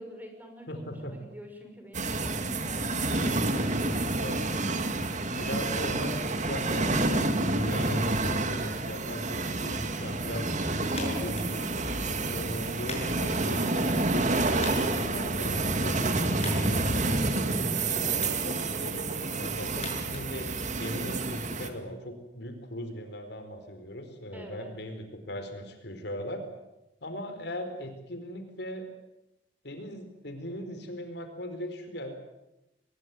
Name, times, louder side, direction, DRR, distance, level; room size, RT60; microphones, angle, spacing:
voice 1, 0.0-4.1 24.3-24.7, equal, 10° right, 4 dB, 5.8 m, -47 dB
voice 2, 0.7-1.2 3.1-4.4 5.3-11.7 12.3-17.2 17.9-20.5 20.8-26.5 27.0-28.9 29.6-32.1, equal, 65° left, 7 dB, 4.5 m, -39 dB
sound 1, 1.9-21.7, right 2 dB, 45° right, 2.4 m, -29 dB
sound 2, 10.9-21.1, left 4 dB, 35° left, 7.6 m, -46 dB
24.5 x 21.5 x 9.3 m, 0.91 s
head